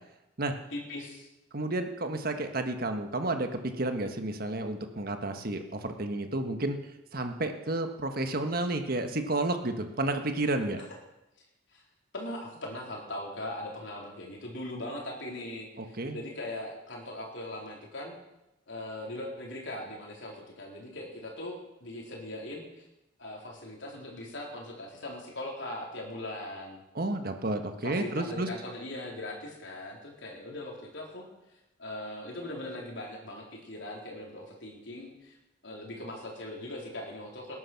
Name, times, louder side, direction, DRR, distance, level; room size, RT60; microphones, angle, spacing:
voice 1, 0.7-1.3 11.7-11.8 12.1-18.1 18.7-22.9 23.2-26.8 27.8-31.3 31.8-35.4 35.6-37.6, left 1 dB, 75° left, -1 dB, 3.8 m, -40 dB
voice 2, 1.5-10.8 15.8-16.2 26.9-28.5, right 2 dB, 50° right, 6 dB, 1.5 m, -31 dB
20.5 x 11.0 x 6.0 m, 0.94 s
head